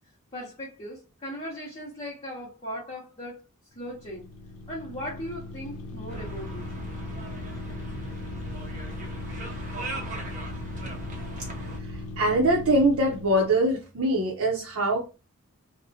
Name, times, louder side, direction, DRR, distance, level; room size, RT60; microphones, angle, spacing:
voice 1, 0.3-3.4 3.7-4.3 4.7-6.7, equal, 30° left, 0.7 m, -38 dB
sound 1, 3.7-13.6, left 2 dB, 85° left, 0.6 m, -39 dB
sound 2, 6.1-11.8, right 1 dB, 35° right, 0.6 m, -38 dB
voice 2, 11.8-15.1, right 1 dB, 75° right, 0.6 m, -23 dB
2.7 x 2.0 x 2.7 m
head